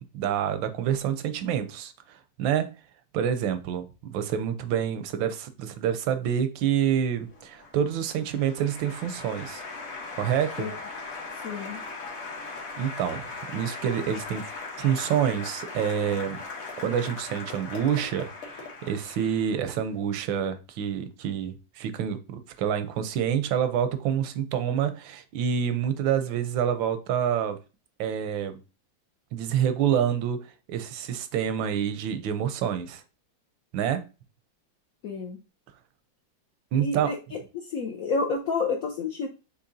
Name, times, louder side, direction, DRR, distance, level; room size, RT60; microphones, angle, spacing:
voice 1, 0.0-2.7 3.1-9.6 10.1-10.7 12.8-13.2 13.5-14.5 14.8-16.4 16.8-27.6 28.0-28.6 29.3-33.0 33.7-34.1 36.7-37.2, right 9 dB, 90° right, 1.4 m, -27 dB
Applause, 7.3-19.8, left 3 dB, 45° left, 1.1 m, -39 dB
voice 2, 11.4-11.8 35.0-35.4 36.7-37.2 37.7-39.3, left 4 dB, 65° left, 0.9 m, -29 dB
6.6 x 2.9 x 2.6 m
omnidirectional pair, 2.0 m